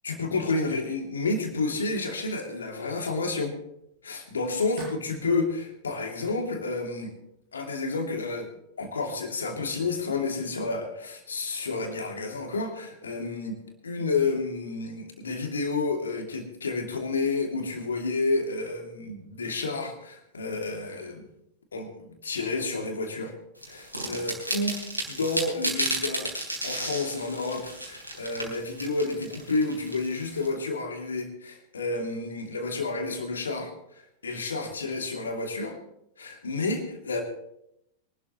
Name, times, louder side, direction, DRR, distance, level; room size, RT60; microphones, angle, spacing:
voice 1, 0.0-3.5 4.0-7.1 7.5-8.5 8.8-21.2 21.7-23.3 23.7-24.7 25.1-26.3 26.6-35.8 36.2-37.2, left 3 dB, 70° left, 3 dB, 2.6 m, -30 dB
sound 1, 1.9-8.1, right 4 dB, 55° right, 6.6 m, -50 dB
sound 2, 23.6-30.5, right 1 dB, 90° left, 3.6 m, -33 dB
23.5 x 12.5 x 3.0 m, 0.78 s
figure-of-eight pair, 90°, 0 cm